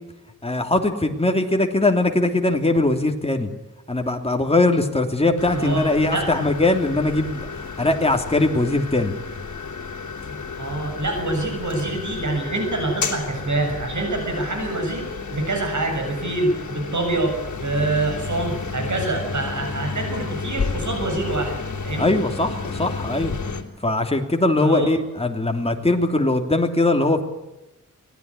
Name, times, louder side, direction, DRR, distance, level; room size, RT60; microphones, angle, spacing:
voice 1, 0.4-3.5 3.9-7.5 7.8-9.1 22.0-23.4 23.8-27.2, left 2 dB, 20° left, 4 dB, 2.9 m, -21 dB
sound 1, 5.4-23.6, left 4 dB, 65° left, 3.4 m, -32 dB
voice 2, 5.5-6.3 10.6-21.6 21.8-22.2 24.6-24.9, right 2 dB, 65° right, 3 dB, 7.2 m, -26 dB
24.5 x 19.0 x 9.8 m, 1.0 s
wide cardioid pair, 110°, 31 cm